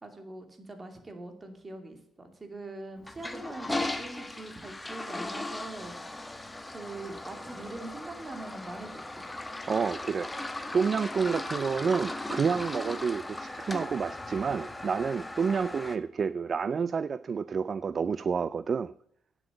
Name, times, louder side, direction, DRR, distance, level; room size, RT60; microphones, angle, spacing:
voice 1, 0.0-6.3 6.7-9.3, right 2 dB, 30° right, 2.5 m, -43 dB
Toilet flush, 3.0-16.0, left 2 dB, 10° left, 1.1 m, -38 dB
voice 2, 9.7-10.4 10.7-18.9, right 6 dB, 45° right, 0.3 m, -29 dB
9.1 x 7.8 x 8.7 m
cardioid pair, 90°, 0 cm